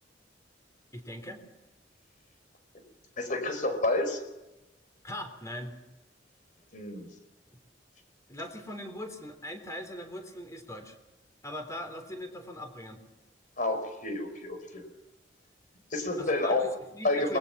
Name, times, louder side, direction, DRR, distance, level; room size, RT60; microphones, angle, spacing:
voice 1, 0.9-1.4 5.0-5.8 8.3-11.0 11.4-13.1 16.2-17.4, left 1 dB, 20° left, 5 dB, 3.6 m, -40 dB
voice 2, 3.2-4.2 6.7-7.1 13.6-14.8 15.9-16.7 17.0-17.4, left 2 dB, 45° left, 7 dB, 5.1 m, -29 dB
27.5 x 21.5 x 6.0 m, 1.0 s
head